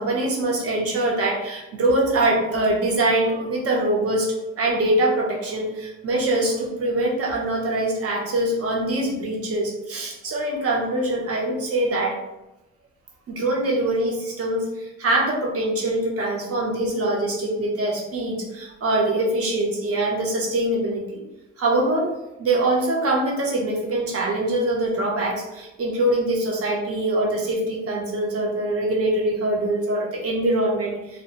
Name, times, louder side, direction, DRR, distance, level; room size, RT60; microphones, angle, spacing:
voice 1, 0.0-12.2 13.3-21.2 21.6-31.2, right 1 dB, 50° right, -1 dB, 0.8 m, -23 dB
2.2 x 2.0 x 2.9 m, 0.95 s
cardioid pair, 90°, 30 cm